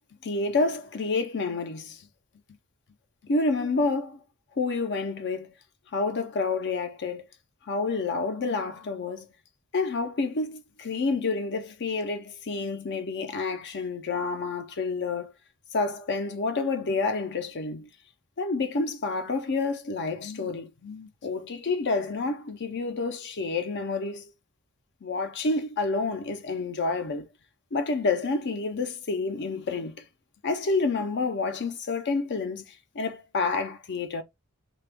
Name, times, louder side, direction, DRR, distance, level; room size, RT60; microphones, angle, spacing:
voice 1, 0.2-2.1 3.2-4.2 4.6-5.5 5.9-7.3 7.6-9.3 9.7-15.3 15.7-17.9 18.4-24.3 25.0-27.3 27.7-30.0 30.4-34.2, left 3 dB, 55° left, 0.6 m, -29 dB
3.3 x 2.3 x 3.4 m
head